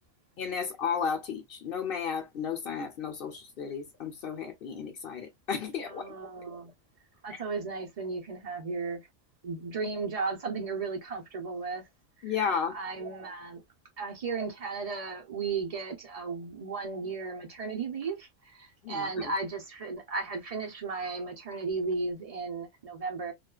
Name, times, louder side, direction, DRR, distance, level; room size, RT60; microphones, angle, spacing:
voice 1, 0.4-6.1 12.2-12.8 18.8-19.3, left 6 dB, 60° left, 0.7 m, -33 dB
voice 2, 5.9-6.7 7.2-9.0 9.4-11.8 12.2-12.4 12.7-13.6 14.0-23.3, right 4 dB, 45° right, 0.4 m, -35 dB
2.4 x 2.3 x 2.2 m
omnidirectional pair, 1.3 m